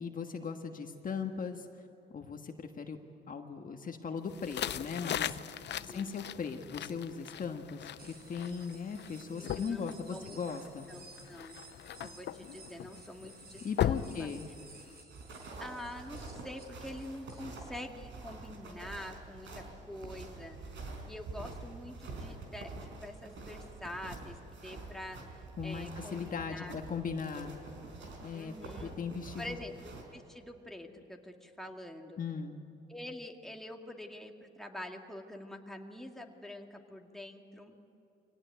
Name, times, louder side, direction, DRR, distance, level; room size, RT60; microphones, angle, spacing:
voice 1, 0.0-1.7 2.1-3.0 3.3-5.4 5.8-10.9 13.6-14.5 25.6-27.6 28.2-28.5 28.8-29.6 32.2-32.6, left 5 dB, 45° left, 4 dB, 1.6 m, -38 dB
sound 1, 4.3-15.0, left 11 dB, 60° left, 0.7 m, -39 dB
voice 2, 5.7-6.1 9.4-10.4 10.9-11.6 12.0-14.3 15.6-20.8 21.0-26.7 27.4-27.5 28.3-28.9 29.4-29.7 30.1-32.2 32.9-37.7, left 1 dB, ahead, 2 dB, 2.1 m, -46 dB
sound 2, 8.0-17.4, right 4 dB, 50° right, 5.7 m, -56 dB
sound 3, 15.1-30.0, right 3 dB, 70° right, 4.7 m, -47 dB
24.0 x 18.0 x 9.4 m, 2.8 s
cardioid pair, 90°, 20 cm